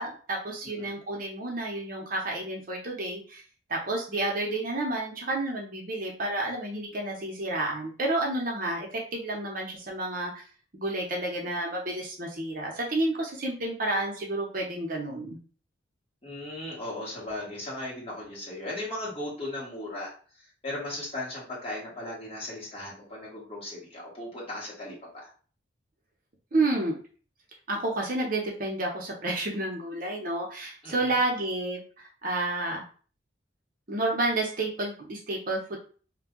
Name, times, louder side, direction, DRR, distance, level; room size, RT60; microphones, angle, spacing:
voice 1, 0.0-3.4 3.7-10.4 10.7-15.4 26.5-27.0 27.7-32.8 33.9-35.8, right 2 dB, 45° right, -1 dB, 0.7 m, -30 dB
voice 2, 0.6-0.9 16.2-20.1 20.6-24.9 25.2-25.3 30.8-31.1, left 1 dB, 30° left, -6 dB, 1.3 m, -37 dB
2.6 x 2.2 x 3.6 m, 0.40 s
head